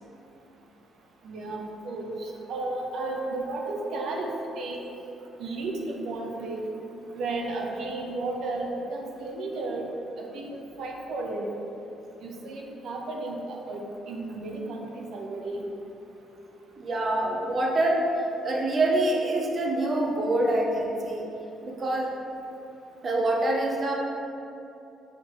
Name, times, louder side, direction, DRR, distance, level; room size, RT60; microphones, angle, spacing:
voice 1, 1.2-4.9 5.4-6.7 7.1-9.9 10.2-11.5 12.2-15.7, right 2 dB, 60° right, 0 dB, 1.0 m, -33 dB
voice 2, 16.8-18.0 18.4-21.3 21.6-22.1 23.0-23.9, right 1 dB, 30° right, -1 dB, 0.8 m, -25 dB
7.0 x 6.5 x 3.1 m, 2.9 s
cardioid pair, 160°, 0 cm